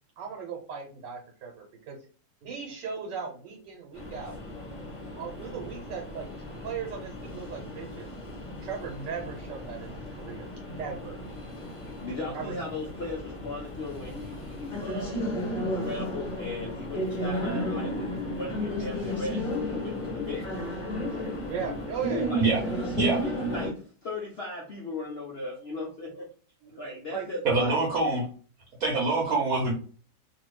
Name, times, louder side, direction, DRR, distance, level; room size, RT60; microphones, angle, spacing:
voice 1, 0.2-2.0 2.4-4.3 5.2-6.3 6.6-8.1 8.6-11.2 12.3-12.5 21.5-22.3 27.1-27.3, right 6 dB, 80° right, 1 dB, 1.4 m, -37 dB
sound 1, 3.9-23.7, equal, 30° left, 0.7 m, -34 dB
voice 2, 12.0-15.3 15.7-20.6 22.1-22.5 23.0-26.3 26.7-27.8, left 2 dB, 65° left, -3 dB, 0.6 m, -37 dB
voice 3, 27.4-28.3 28.8-29.7, right 3 dB, 60° right, -2 dB, 1.1 m, -25 dB
2.7 x 2.6 x 3.0 m, 0.41 s
omnidirectional pair, 1.9 m